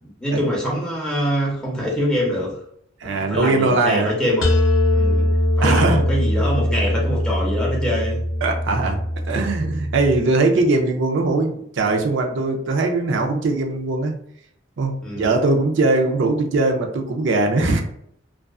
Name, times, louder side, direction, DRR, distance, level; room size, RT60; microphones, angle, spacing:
voice 1, 0.0-2.5 3.0-4.5 4.9-5.3 5.6-8.2 15.0-15.3, equal, 5° left, -4 dB, 0.7 m, -24 dB
voice 2, 3.0-4.1 5.6-6.1 8.4-9.0 9.2-14.1 14.8-17.8, right 3 dB, 70° right, 2 dB, 0.5 m, -20 dB
sound 1, 4.4-10.2, left 1 dB, 85° left, 0.5 m, -21 dB
2.4 x 2.3 x 2.3 m, 0.69 s
head